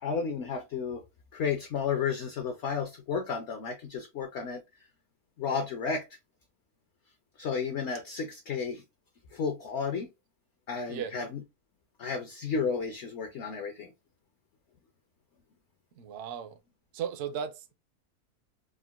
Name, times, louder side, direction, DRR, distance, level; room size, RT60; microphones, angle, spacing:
voice 1, 0.0-1.0 1.3-4.6 5.4-6.0 7.4-8.8 9.3-10.1 10.7-11.3 12.0-13.9, left 5 dB, 65° left, 0.7 m, -32 dB
voice 2, 15.9-16.6 16.9-17.7, right 8 dB, 65° right, 0.7 m, -36 dB
3.7 x 2.1 x 2.3 m
omnidirectional pair, 1.6 m